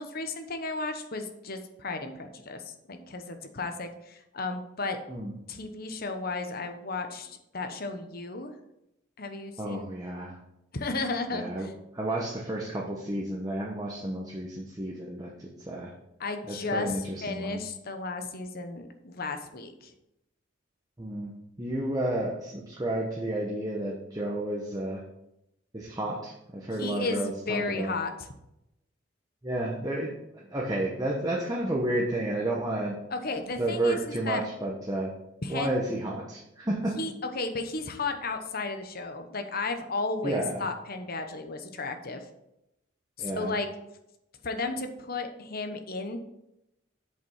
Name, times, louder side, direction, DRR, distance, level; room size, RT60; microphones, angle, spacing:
voice 1, 0.0-5.0 5.5-8.5 9.2-9.8 10.7-11.7 16.2-19.9 26.8-28.3 33.1-34.4 35.4-35.7 37.0-42.2 43.2-43.7 44.4-46.2, left 3 dB, 50° left, 6 dB, 1.0 m, -34 dB
voice 2, 9.6-10.4 11.3-11.7 11.9-15.9 16.4-17.6 21.0-25.0 25.7-28.0 29.4-32.9 33.6-35.1 35.5-37.0 40.2-40.6 43.2-43.5, right 1 dB, 20° right, -3 dB, 1.0 m, -31 dB
7.9 x 5.4 x 5.6 m, 0.85 s
head